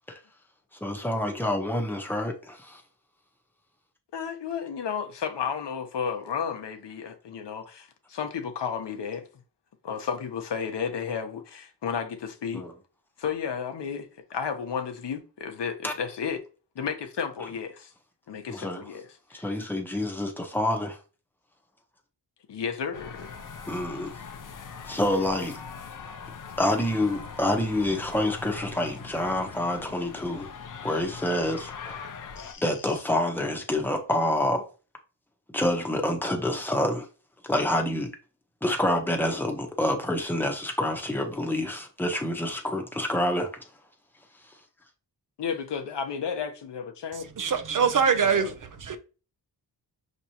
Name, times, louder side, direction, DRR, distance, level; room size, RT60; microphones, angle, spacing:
voice 1, 0.8-2.8 12.5-12.7 15.8-15.9 18.5-18.8 19.3-21.0 23.7-24.1 24.8-25.5 26.6-30.5 30.8-32.1 32.6-34.6 35.5-37.1 37.4-38.1 38.6-43.5, left 1 dB, 5° left, 0.9 m, -27 dB
voice 2, 4.1-9.3 9.8-12.6 13.2-16.4 16.7-17.9 18.3-19.5 22.5-23.3 32.4-32.6 45.4-47.3 48.2-48.5, left 7 dB, 75° left, 0.9 m, -33 dB
sound 1, 22.9-32.5, left 5 dB, 50° left, 0.6 m, -41 dB
voice 3, 47.4-48.5 48.8-49.0, right 6 dB, 50° right, 0.6 m, -23 dB
5.8 x 3.0 x 2.9 m
wide cardioid pair, 110°, 42 cm